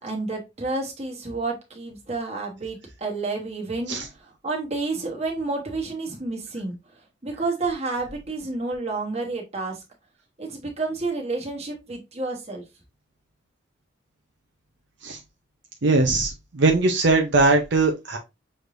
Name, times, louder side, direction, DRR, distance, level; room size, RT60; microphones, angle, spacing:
voice 1, 0.0-6.8 7.2-9.8 10.4-12.6, right 3 dB, 30° right, 1 dB, 1.2 m, -30 dB
voice 2, 15.8-18.2, right 3 dB, 60° right, 3 dB, 0.6 m, -20 dB
6.2 x 3.3 x 2.5 m, 0.24 s
head